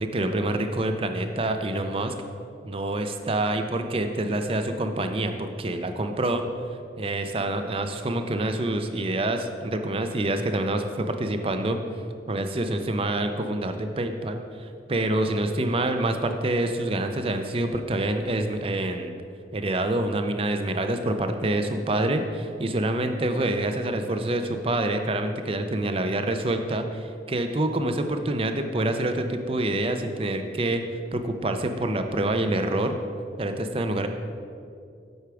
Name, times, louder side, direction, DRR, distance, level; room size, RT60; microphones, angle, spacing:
voice 1, 0.0-2.1 2.6-6.4 7.0-11.8 12.3-19.2 19.5-30.8 31.1-32.9 33.4-34.1, right 1 dB, 30° right, 7 dB, 0.5 m, -26 dB
8.2 x 5.8 x 4.8 m, 2.4 s
head